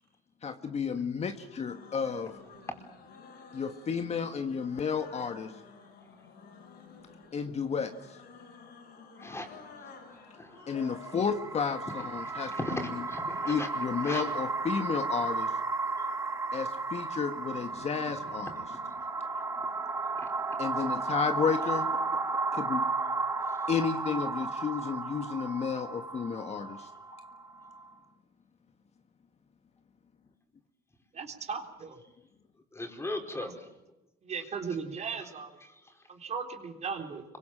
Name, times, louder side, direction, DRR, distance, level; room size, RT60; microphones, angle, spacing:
voice 1, 0.4-2.4 3.5-5.6 7.3-8.2 10.7-12.5 13.5-15.6 16.5-18.5 20.6-21.9 22.5-22.9 23.7-26.9, left 6 dB, 40° left, 7 dB, 1.6 m, -32 dB
sound 1, 1.3-11.2, left 5 dB, 70° left, 7.4 m, -51 dB
voice 2, 9.2-9.5 9.8-9.9 10.3-10.7 12.2-13.7 14.0-14.3 16.0-16.1 18.1-19.7 20.1-20.6 23.4-23.7 32.7-33.7 35.2-35.3 35.6-36.1, left 1 dB, 15° left, 4 dB, 4.9 m, -40 dB
sound 2, 10.7-27.9, right 3 dB, 15° right, 1.9 m, -34 dB
voice 3, 31.1-32.0 33.4-33.5 34.2-35.5 36.1-37.2, right 5 dB, 40° right, 4 dB, 3.8 m, -37 dB
25.5 x 23.5 x 7.5 m, 0.99 s
cardioid pair, 110°, 17 cm